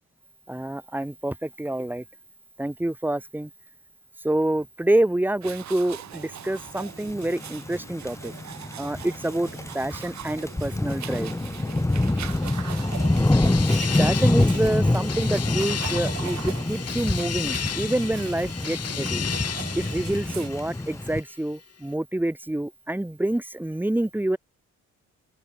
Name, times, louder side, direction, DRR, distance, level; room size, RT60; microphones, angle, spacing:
voice 1, 0.5-2.0 2.6-3.5 4.2-8.3 8.8-11.4 13.7-19.2 19.8-24.4, right 1 dB, 5° right, 1.5 m, -27 dB
sound 1, 5.4-20.5, right 10 dB, 65° right, 4.4 m, -41 dB
sound 2, 6.9-21.2, left 2 dB, 10° left, 1.5 m, -26 dB
sound 3, 12.1-21.2, left 9 dB, 55° left, 2.8 m, -34 dB
open air
cardioid pair, 90°, 30 cm